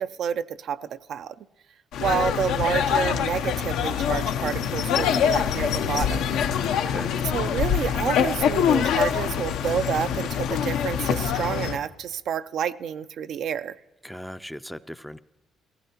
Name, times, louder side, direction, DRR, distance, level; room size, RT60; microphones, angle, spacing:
voice 1, 0.0-1.3 2.0-6.4 7.2-13.8, right 8 dB, 70° right, 12 dB, 0.3 m, -29 dB
sound 1, 1.9-11.8, left 8 dB, 90° left, 0.6 m, -24 dB
voice 2, 6.5-7.2 14.0-15.2, equal, ahead, 13 dB, 0.3 m, -38 dB
17.5 x 16.0 x 2.9 m, 1.1 s
cardioid pair, 90°, 0 cm